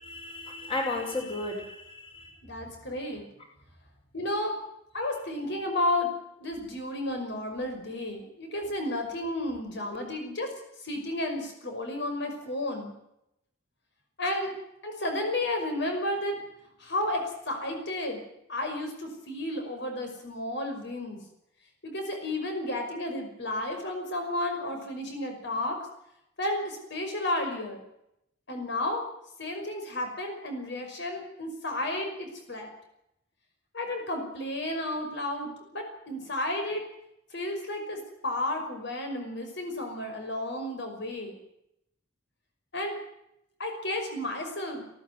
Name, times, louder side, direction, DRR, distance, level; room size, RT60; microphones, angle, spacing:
voice 1, 0.0-2.3, left 2 dB, 30° left, 2 dB, 5.6 m, -34 dB
voice 2, 2.4-3.2 4.1-4.6 4.9-6.1 6.4-10.5 10.8-12.9 14.2-14.5 14.8-16.4 16.8-18.2 18.5-21.2 21.8-25.8 26.4-27.8 28.5-29.0 29.4-32.7 33.7-36.8 37.3-41.4 42.7-43.0 43.6-44.9, left 1 dB, 65° left, 4 dB, 5.6 m, -32 dB
19.0 x 17.5 x 9.5 m, 0.81 s
head